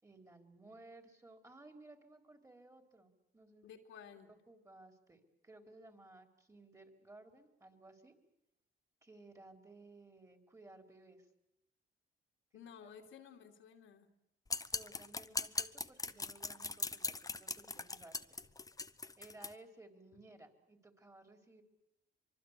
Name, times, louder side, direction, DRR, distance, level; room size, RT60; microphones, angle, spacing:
voice 1, 0.0-3.7 4.3-8.2 9.0-11.3 12.8-13.1 14.7-18.2 19.2-21.6, right 2 dB, 15° right, 6 dB, 4.1 m, -58 dB
voice 2, 3.6-4.3 12.5-14.1, left 7 dB, 80° left, 3 dB, 2.8 m, -54 dB
sound 1, 14.5-19.5, left 3 dB, 15° left, 0.9 m, -40 dB
25.0 x 23.5 x 8.3 m, 0.85 s
cardioid pair, 90°, 20 cm